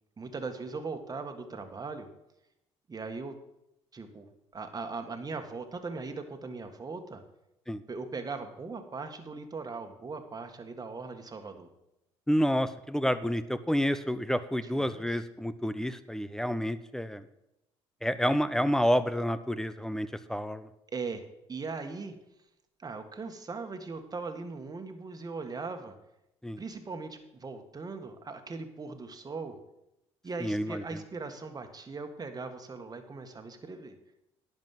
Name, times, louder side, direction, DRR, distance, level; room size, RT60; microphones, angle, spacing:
voice 1, 0.2-2.1 2.9-3.3 3.9-4.3 4.5-7.2 7.9-11.7 14.6-15.2 20.9-21.2 21.5-22.1 22.8-25.9 26.6-29.6 30.2-34.0, right 4 dB, 30° right, 6 dB, 1.6 m, -39 dB
voice 2, 12.3-17.3 18.0-20.7 26.4-26.6 30.4-31.0, equal, 5° left, 14 dB, 0.7 m, -29 dB
11.0 x 5.3 x 7.7 m, 0.86 s
supercardioid pair, 70°, 13 cm